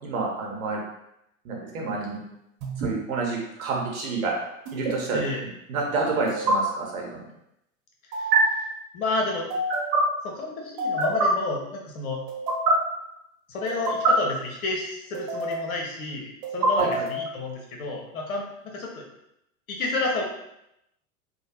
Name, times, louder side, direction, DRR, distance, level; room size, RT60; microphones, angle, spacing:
voice 1, 0.0-0.8 1.4-2.2 2.8-4.3 4.7-5.2 5.7-7.3 16.7-16.9, right 3 dB, 90° right, -1 dB, 0.9 m, -28 dB
sound 1, 2.6-2.9 4.6-4.9 6.3-6.5 8.1-8.4 9.5-10.0 10.8-11.3 12.3-12.7 13.7-14.1 15.1-15.7 16.4-17.3, right 3 dB, 55° right, 1.0 m, -25 dB
voice 2, 8.9-9.5 10.2-12.2 13.5-19.0 19.7-20.2, left 2 dB, 85° left, 0 dB, 0.9 m, -30 dB
2.8 x 2.0 x 2.9 m, 0.82 s
hypercardioid pair, 110°, 41 cm